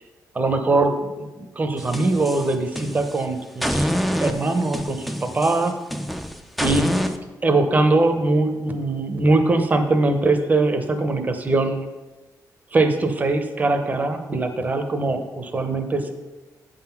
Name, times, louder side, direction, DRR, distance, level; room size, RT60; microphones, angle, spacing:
voice 1, 0.3-3.9 4.2-5.7 6.6-6.9 7.4-11.9 12.7-16.1, right 2 dB, 25° right, 6 dB, 0.8 m, -21 dB
sound 1, 1.8-3.2 3.6-7.2, equal, ahead, 0.5 m, -26 dB
8.5 x 3.9 x 5.9 m, 1.2 s
cardioid pair, 125°, 7 cm